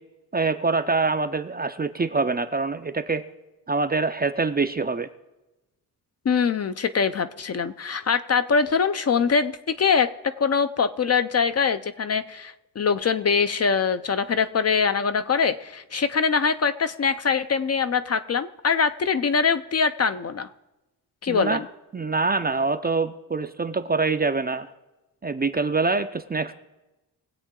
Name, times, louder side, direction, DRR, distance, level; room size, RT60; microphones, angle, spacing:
voice 1, 0.3-3.2 3.7-5.1 21.3-21.6 21.9-24.7 25.2-26.5, right 4 dB, 25° right, 10 dB, 0.4 m, -25 dB
voice 2, 6.3-10.1 10.4-20.5 21.2-21.7, left 5 dB, 40° left, 11 dB, 0.4 m, -23 dB
21.5 x 8.1 x 3.7 m, 1.0 s
wide cardioid pair, 150°, 41 cm